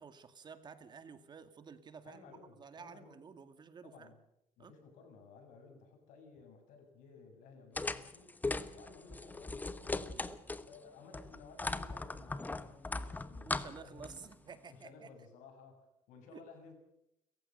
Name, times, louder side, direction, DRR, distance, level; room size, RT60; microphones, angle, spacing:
voice 1, 0.0-2.3 2.6-4.1 4.6-4.7 10.1-10.4 13.4-15.1 16.3-16.4, right 6 dB, 35° right, 10 dB, 2.1 m, -52 dB
voice 2, 2.0-3.2 3.8-4.2 4.6-8.3 8.7-10.0 10.6-14.3 14.7-16.7, left 4 dB, 85° left, 4 dB, 7.5 m, -56 dB
sound 1, 7.8-10.8 11.1-14.3, left 3 dB, 15° left, 1.1 m, -39 dB
29.0 x 15.5 x 6.6 m, 0.83 s
cardioid pair, 120°, 13 cm